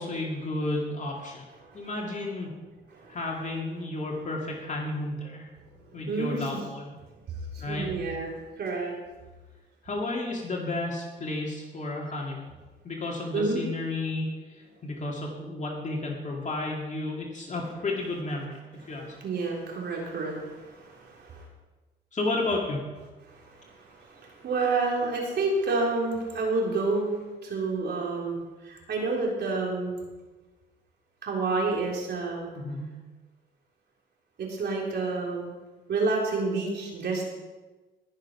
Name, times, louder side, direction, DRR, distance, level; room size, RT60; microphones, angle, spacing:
voice 1, 0.0-1.4 1.7-2.5 3.1-5.5 5.9-6.8 7.6-7.9 9.8-12.5 12.8-19.1 22.1-22.8 32.5-33.0, left 2 dB, 40° left, -1 dB, 2.3 m, -32 dB
voice 2, 5.8-6.6 7.5-8.9 13.3-13.6 18.8-21.4 23.3-28.4 28.6-29.9 31.2-32.5 34.4-35.5 35.9-37.2, right 3 dB, 60° right, -2 dB, 4.0 m, -29 dB
19.5 x 6.7 x 5.7 m, 1.2 s
cardioid pair, 90°, 20 cm